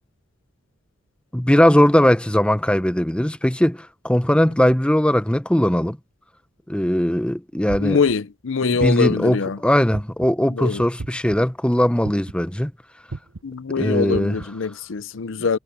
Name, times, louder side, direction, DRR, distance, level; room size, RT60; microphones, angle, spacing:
voice 1, 1.3-6.0 6.7-8.0 8.6-12.7 13.8-14.4, equal, 5° left, 0.7 m, -19 dB
sound 1, 7.7-8.1 8.8-9.3 9.9-10.4 11.0-11.4 12.0-12.5 13.1-13.4 14.1-14.5, right 3 dB, 75° right, 0.9 m, -33 dB
voice 2, 7.8-9.6 10.5-10.8 13.4-15.6, left 5 dB, 70° left, 0.6 m, -23 dB
head